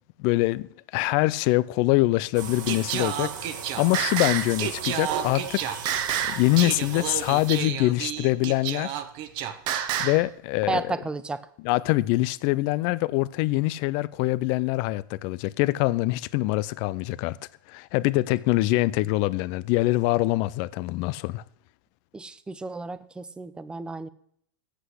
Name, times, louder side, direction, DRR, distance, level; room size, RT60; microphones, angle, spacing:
voice 1, 0.2-3.5 3.8-5.9 6.3-8.9 10.0-10.8 11.6-17.4 17.7-21.4, left 19 dB, 45° left, 0.4 m, -24 dB
sound 1, 2.3-7.9, right 6 dB, 65° right, 1.9 m, -37 dB
Singing, 2.7-10.3, right 10 dB, 45° right, 1.0 m, -30 dB
voice 2, 10.7-11.5 22.1-24.1, right 3 dB, 10° right, 0.6 m, -32 dB
8.2 x 7.8 x 6.4 m
hypercardioid pair, 125°, 11 cm